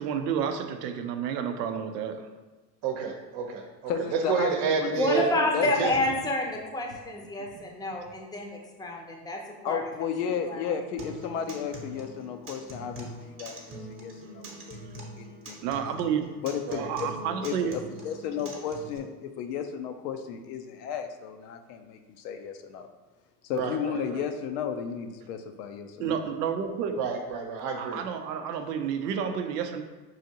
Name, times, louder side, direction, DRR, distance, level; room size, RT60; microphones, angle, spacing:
voice 1, 0.0-2.3 7.4-7.6 15.6-16.3 16.8-17.8 26.0-27.0 27.8-29.8, right 7 dB, 90° right, 7 dB, 0.6 m, -30 dB
voice 2, 2.8-3.7 4.1-5.3 5.6-5.9 16.7-16.9 23.5-24.2 27.0-28.0, right 6 dB, 55° right, 4 dB, 0.8 m, -29 dB
voice 3, 3.9-5.9 9.6-15.8 16.4-17.1 17.4-22.9 23.4-26.2, left 7 dB, 80° left, 6 dB, 0.6 m, -34 dB
voice 4, 5.0-9.4 9.6-9.8 10.5-10.6, left 1 dB, 10° left, 0 dB, 0.6 m, -28 dB
Acoustic guitar, 11.0-19.0, equal, 30° right, 1.0 m, -43 dB
5.5 x 2.5 x 2.8 m, 1.2 s
hypercardioid pair, 80°, 47 cm